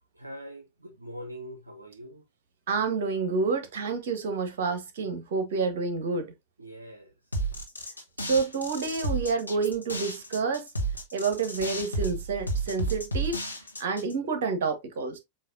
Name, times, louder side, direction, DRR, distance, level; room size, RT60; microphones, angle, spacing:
voice 1, 0.2-2.2 6.6-7.1, equal, 80° right, 0.7 m, -43 dB
voice 2, 2.7-6.3 8.2-10.7 11.1-13.4 13.8-15.2, right 4 dB, 55° right, 1.1 m, -29 dB
sound 1, 7.3-14.1, right 2 dB, 85° left, 1.0 m, -32 dB
7.3 x 2.6 x 2.5 m
figure-of-eight pair, 90°, 0 cm